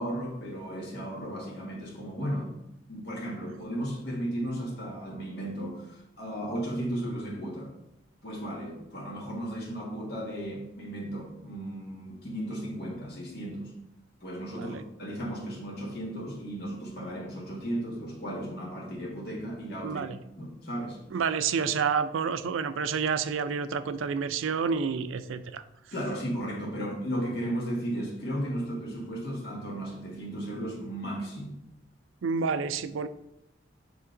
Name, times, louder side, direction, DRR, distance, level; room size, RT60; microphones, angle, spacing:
voice 1, 0.0-2.6 2.9-7.7 8.2-13.7 14.2-20.0 20.4-21.0 25.9-31.6, right 1 dB, 55° left, -3 dB, 1.6 m, -35 dB
voice 2, 19.8-20.2 21.1-25.6 32.2-33.1, right 6 dB, 85° right, 12 dB, 0.4 m, -29 dB
7.2 x 3.5 x 3.8 m, 0.85 s
head